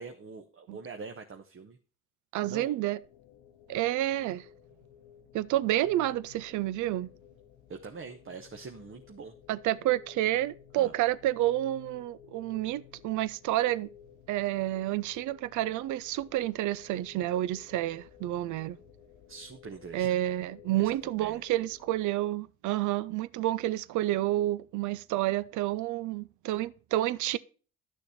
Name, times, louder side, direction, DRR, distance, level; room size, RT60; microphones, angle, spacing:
voice 1, 0.0-1.8 2.4-2.7 7.7-9.3 10.7-10.9 19.3-20.2 20.7-21.4, right 5 dB, 40° right, 1.1 m, -44 dB
voice 2, 2.3-3.0 3.7-4.4 5.3-7.1 9.5-13.9 14.3-18.8 19.9-27.4, right 14 dB, 60° right, 0.6 m, -29 dB
sound 1, 3.0-22.0, left 9 dB, 75° left, 1.0 m, -55 dB
12.0 x 6.6 x 4.2 m
hypercardioid pair, 45°, 33 cm